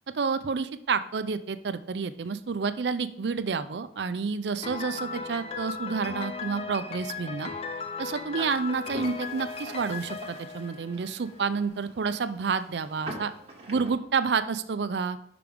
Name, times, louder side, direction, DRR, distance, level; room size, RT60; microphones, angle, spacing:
voice 1, 0.1-7.5 8.0-13.3 13.7-15.2, right 5 dB, 80° right, 12 dB, 0.5 m, -29 dB
Piano, 4.6-11.5, left 5 dB, 35° left, 0.4 m, -37 dB
sound 1, 8.4-13.9, right 1 dB, 35° right, 1.4 m, -44 dB
5.9 x 5.2 x 5.0 m, 0.69 s
head